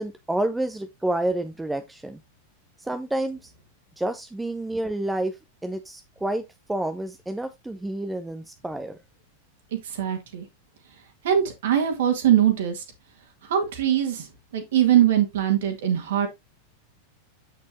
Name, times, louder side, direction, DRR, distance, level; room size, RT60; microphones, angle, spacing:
voice 1, 0.0-2.2 2.8-3.5 4.0-5.4 5.6-9.0, right 1 dB, 5° right, 0.7 m, -29 dB
voice 2, 9.8-10.5 11.2-12.8 13.5-14.3 14.5-16.3, right 10 dB, 60° right, 1.9 m, -22 dB
8.3 x 6.4 x 2.9 m
figure-of-eight pair, 90°, 0 cm